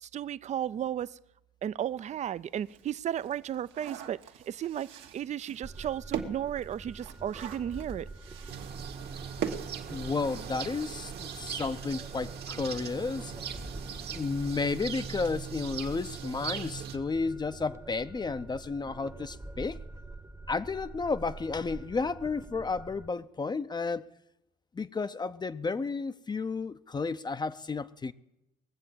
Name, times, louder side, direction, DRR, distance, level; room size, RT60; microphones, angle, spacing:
voice 1, 0.0-1.2 1.6-8.1, right 10 dB, 40° right, 0.4 m, -34 dB
sound 1, 1.9-2.0 2.4-10.5 10.8-10.9 11.2-11.4, right 8 dB, 75° right, 1.4 m, -41 dB
sound 2, 5.6-23.1, right 3 dB, 15° right, 0.9 m, -46 dB
sound 3, 8.5-17.0, right 7 dB, 60° right, 1.4 m, -40 dB
voice 2, 9.9-13.3 13.9-19.8 20.5-24.0 24.7-28.1, left 4 dB, 25° left, 0.6 m, -32 dB
20.0 x 7.5 x 7.5 m
supercardioid pair, 75°, 19 cm